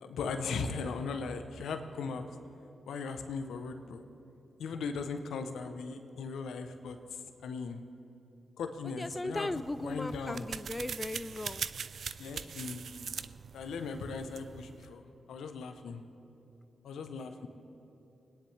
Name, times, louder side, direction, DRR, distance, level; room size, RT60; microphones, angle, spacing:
voice 1, 0.0-2.2 2.8-4.0 4.6-7.0 7.4-7.8 8.6-9.5 9.8-10.5 12.2-13.2 13.5-15.0 15.3-16.0 16.8-17.5, left 5 dB, 80° left, 7 dB, 0.8 m, -38 dB
voice 2, 8.8-11.7, left 2 dB, 25° left, 14 dB, 0.3 m, -37 dB
sound 1, 9.5-14.9, right 6 dB, 70° right, 0.3 m, -42 dB
23.0 x 10.0 x 3.3 m, 2.9 s
supercardioid pair, 40°, 0 cm